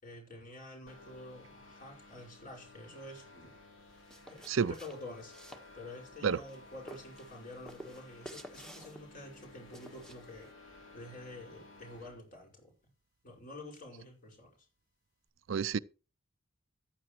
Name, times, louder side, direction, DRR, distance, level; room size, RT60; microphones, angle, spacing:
voice 1, 0.0-3.5 4.3-12.7 13.2-14.7, left 1 dB, 45° left, 5.4 m, -49 dB
sound 1, 0.9-12.2, left 2 dB, 90° left, 3.3 m, -56 dB
sound 2, 3.9-10.5, right 1 dB, 5° left, 1.4 m, -53 dB
voice 2, 15.5-15.8, right 6 dB, 75° right, 0.5 m, -29 dB
14.5 x 10.5 x 3.1 m
head